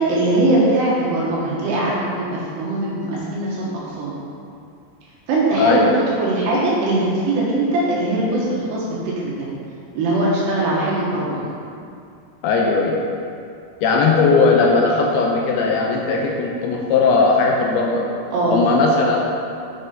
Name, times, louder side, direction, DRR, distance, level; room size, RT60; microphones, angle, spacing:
voice 1, 0.0-2.2 2.6-3.7 4.0-4.1 5.3-8.8 9.2-9.5 9.9-11.4 18.3-18.6, right 2 dB, 75° right, -6 dB, 3.5 m, -20 dB
voice 2, 5.6-5.9 12.4-13.0 13.8-18.1 18.5-19.2, left 4 dB, 80° left, 0 dB, 2.4 m, -17 dB
8.8 x 6.5 x 5.2 m, 2.5 s
omnidirectional pair, 5.1 m